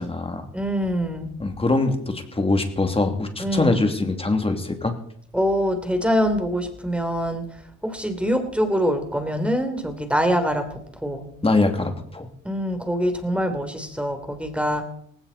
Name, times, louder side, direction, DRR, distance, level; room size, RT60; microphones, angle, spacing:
voice 1, 0.0-0.5 1.4-4.9 11.4-12.3, left 2 dB, 20° left, 5 dB, 2.6 m, -23 dB
voice 2, 0.5-1.3 3.4-3.8 5.3-7.4 7.8-11.3 12.4-14.8, equal, 5° right, 6 dB, 3.3 m, -24 dB
18.5 x 16.5 x 4.2 m, 0.67 s
cardioid pair, 90°, 30 cm